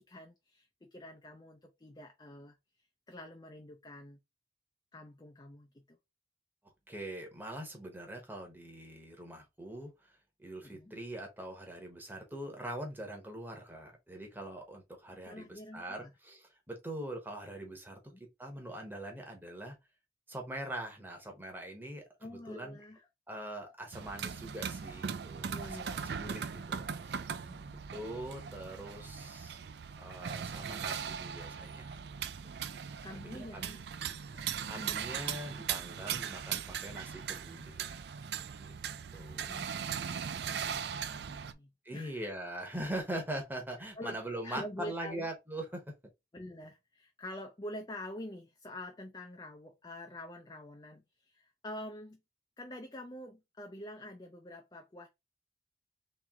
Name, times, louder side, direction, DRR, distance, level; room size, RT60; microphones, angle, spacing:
voice 1, 0.0-4.2 4.9-6.0 10.6-10.9 15.2-16.1 18.1-18.2 22.2-23.0 25.5-26.2 27.5-27.9 33.0-33.8 34.1-34.5 39.4-42.2 43.9-44.2 44.4-45.3 46.3-52.2 52.6-55.1, left 1 dB, 25° left, 0.5 m, -47 dB
voice 2, 6.9-18.0 18.4-19.7 20.3-22.8 23.3-27.5 27.9-29.6 30.0-32.0 33.1-33.7 34.7-38.0 38.6-38.7 39.1-39.6 41.8-45.8, right 1 dB, 10° right, 1.0 m, -43 dB
sound 1, 23.9-41.5, right 7 dB, 65° right, 0.4 m, -39 dB
3.2 x 3.1 x 3.6 m
head